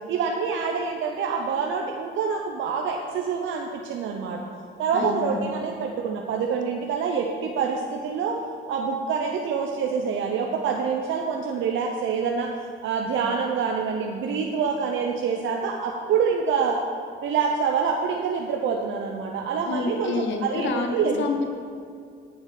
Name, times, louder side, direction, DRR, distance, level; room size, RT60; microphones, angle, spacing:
voice 1, 0.1-4.4 4.8-8.4 8.7-12.5 12.8-16.8 17.2-21.2, right 6 dB, 80° right, 1 dB, 0.8 m, -26 dB
voice 2, 4.9-5.4 19.6-20.9 21.2-21.5, left 4 dB, 70° left, 4 dB, 1.1 m, -28 dB
9.9 x 7.1 x 5.0 m, 2.3 s
cardioid pair, 90°, 20 cm